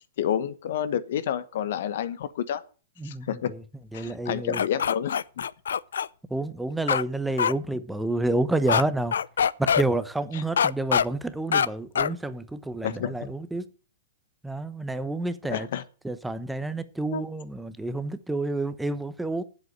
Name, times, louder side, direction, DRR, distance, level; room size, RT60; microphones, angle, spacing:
voice 1, 0.2-2.6 3.0-3.5 3.9-5.5 10.3-10.4 12.8-13.3 15.5-15.8 17.1-17.3, left 9 dB, 65° left, 1.1 m, -29 dB
voice 2, 3.0-3.6 3.9-4.6 6.3-9.2 9.6-13.7 14.4-15.7 16.0-19.4, right 2 dB, 5° right, 0.9 m, -29 dB
sound 1, 4.5-6.1 6.9-7.0 7.4-7.5 8.7-8.8 9.1-9.8 10.6-11.0 11.5-11.7 11.9-12.1, left 7 dB, 80° left, 0.5 m, -23 dB
7.8 x 7.7 x 8.8 m
hypercardioid pair, 120°, 0 cm